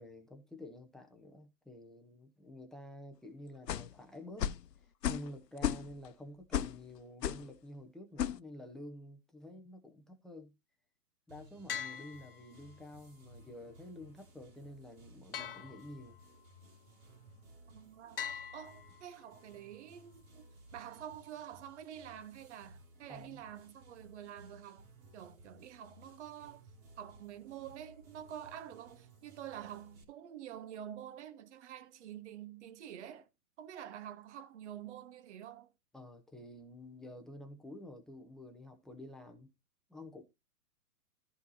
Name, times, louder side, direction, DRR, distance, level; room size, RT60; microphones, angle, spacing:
voice 1, 0.0-4.5 5.0-10.6 11.3-16.2 23.1-23.4 35.9-39.5 39.9-40.2, left 1 dB, ahead, 0.9 m, -50 dB
sound 1, 3.7-3.9 4.4-4.7 5.0-5.3 5.6-6.1 6.5-6.8 7.2-7.5 8.2-8.4, left 10 dB, 90° left, 0.8 m, -34 dB
sound 2, 11.3-30.0, right 1 dB, 25° right, 3.1 m, -59 dB
sound 3, 11.7-12.9 15.3-16.4 18.2-19.4, left 8 dB, 40° left, 0.4 m, -43 dB
voice 2, 17.7-18.2 18.5-20.5 20.7-26.6 27.0-33.3 33.6-35.7, right 10 dB, 45° right, 1.4 m, -48 dB
14.0 x 4.7 x 4.1 m
hypercardioid pair, 150°, 48 cm